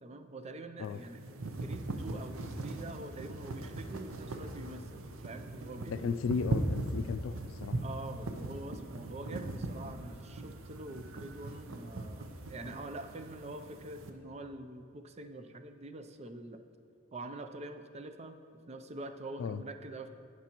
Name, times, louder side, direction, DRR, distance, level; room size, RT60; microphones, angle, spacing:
voice 1, 0.0-1.2 1.6-4.9 5.2-6.2 7.8-16.6 17.1-20.1, right 2 dB, 30° right, 8 dB, 0.4 m, -45 dB
sound 1, 0.8-14.1, right 2 dB, 85° right, 0.7 m, -39 dB
voice 2, 5.9-7.3 7.6-7.8 19.4-19.6, left 5 dB, 75° left, 13 dB, 0.3 m, -34 dB
18.0 x 6.0 x 3.0 m, 2.5 s
head